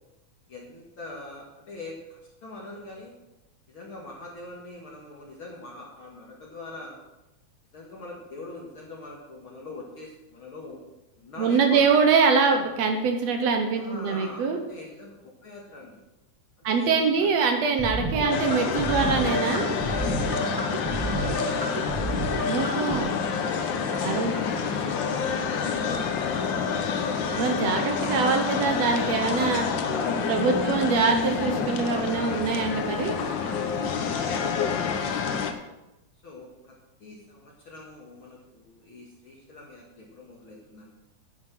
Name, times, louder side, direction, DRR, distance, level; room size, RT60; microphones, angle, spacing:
voice 1, 0.5-3.1 3.7-7.0 7.7-10.8 11.2-11.9 13.7-16.0 16.7-17.3 20.0-21.7 23.9-25.8 26.2-28.7 29.5-30.9 33.1-34.3 36.2-36.7 37.0-40.9, left 2 dB, 50° left, -2 dB, 2.3 m, -42 dB
voice 2, 11.4-14.6 16.6-19.7 22.5-23.2 24.0-24.4 27.4-29.7 30.3-33.1, right 5 dB, 65° right, 5 dB, 2.1 m, -24 dB
sound 1, 17.8-23.0, right 1 dB, 20° right, 0.6 m, -30 dB
sound 2, 18.3-35.5, left 6 dB, 80° left, 1.0 m, -28 dB
9.6 x 9.5 x 6.1 m, 0.98 s
omnidirectional pair, 3.4 m